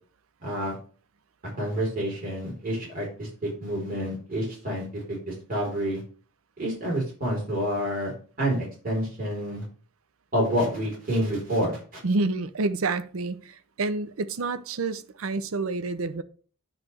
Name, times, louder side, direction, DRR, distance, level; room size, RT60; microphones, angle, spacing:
voice 1, 0.4-0.8 1.6-6.0 6.6-9.7 10.3-11.8, equal, 40° right, 3.5 m, -28 dB
voice 2, 12.0-16.2, right 3 dB, 80° right, 0.6 m, -28 dB
9.6 x 3.2 x 6.2 m
head